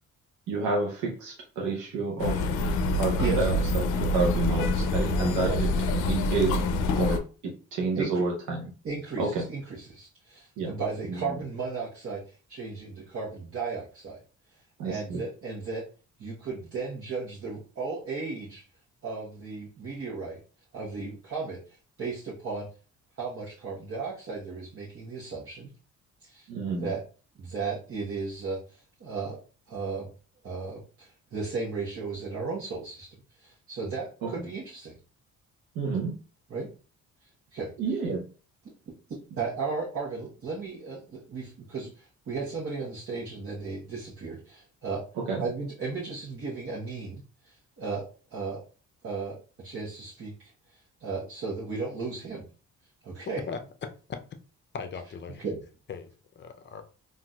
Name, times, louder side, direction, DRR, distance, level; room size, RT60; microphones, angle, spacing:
voice 1, 0.5-2.5 3.0-5.7 5.9-6.6 7.0-8.7 9.2-9.5 10.6-10.7 11.1-11.2 14.8-15.2 26.5-26.9 34.2-34.3 35.7-36.2 37.8-38.2 45.2-45.4, right 3 dB, 85° right, 0.8 m, -29 dB
Chinatown with Seagulls (RT), 2.2-7.2, left 2 dB, 90° left, 0.5 m, -26 dB
voice 2, 8.8-12.2 12.5-14.2 14.8-15.8 16.2-18.6 19.0-20.4 20.7-21.6 22.0-22.7 23.2-25.7 26.2-26.5 26.8-27.0 27.4-29.4 29.7-30.1 30.4-35.0 36.5-36.7 37.5-37.7 38.0-38.1 39.3-45.1 45.4-48.6 49.0-50.5 51.0-52.5 53.0-53.4 55.4-55.6, right 4 dB, 50° right, 1.1 m, -35 dB
voice 3, 53.5-54.2 54.7-55.4 55.9-56.1 56.4-56.8, left 5 dB, 40° left, 0.6 m, -38 dB
3.9 x 2.6 x 2.3 m
cardioid pair, 90°, 30 cm